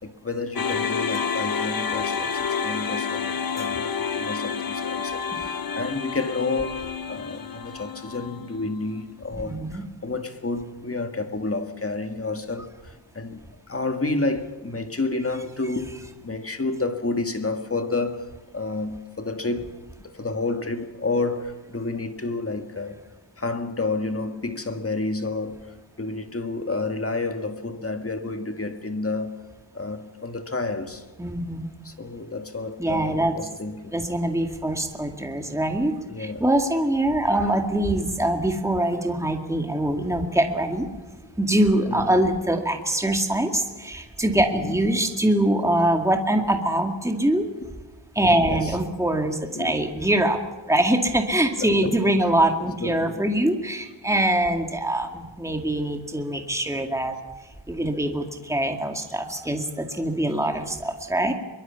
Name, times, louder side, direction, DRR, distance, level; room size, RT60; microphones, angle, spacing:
voice 1, 0.0-23.0 23.4-29.4 29.7-31.1 31.8-34.0 36.1-36.5 37.3-37.5 41.3-41.4 41.9-42.2 44.7-44.8 48.4-48.8 49.5-49.9 51.6-52.0 52.8-53.2 59.5-60.1, left 3 dB, 30° left, 1.8 m, -30 dB
sound 1, 0.5-8.8, left 6 dB, 50° left, 1.3 m, -29 dB
voice 2, 9.4-9.8 31.2-31.7 32.8-33.3 33.9-40.9 41.4-47.5 48.2-50.4 50.7-57.2 57.7-61.3, right 1 dB, 5° right, 2.2 m, -23 dB
23.0 x 22.5 x 7.0 m
wide cardioid pair, 110°, 45 cm